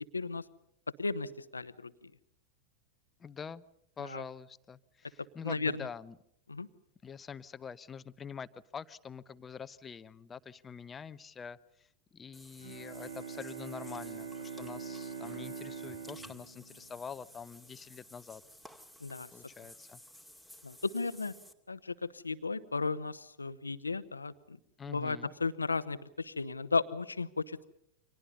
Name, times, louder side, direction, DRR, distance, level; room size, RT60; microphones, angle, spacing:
voice 1, 0.1-0.4 1.0-2.1 4.0-4.2 5.4-5.7 6.5-6.7 19.0-19.3 20.6-21.3 21.7-24.6 24.9-27.6, left 4 dB, 80° left, 13 dB, 1.0 m, -35 dB
voice 2, 3.2-3.6 4.0-6.2 7.0-18.4 19.3-20.0 24.8-25.3, left 6 dB, 20° left, 15 dB, 0.9 m, -45 dB
Water / Bathtub (filling or washing), 12.3-21.5, left 1 dB, 5° right, 2.2 m, -55 dB
Bowed string instrument, 12.6-17.6, right 6 dB, 70° right, 2.4 m, -44 dB
29.5 x 25.5 x 5.5 m, 0.73 s
figure-of-eight pair, 90°, 0 cm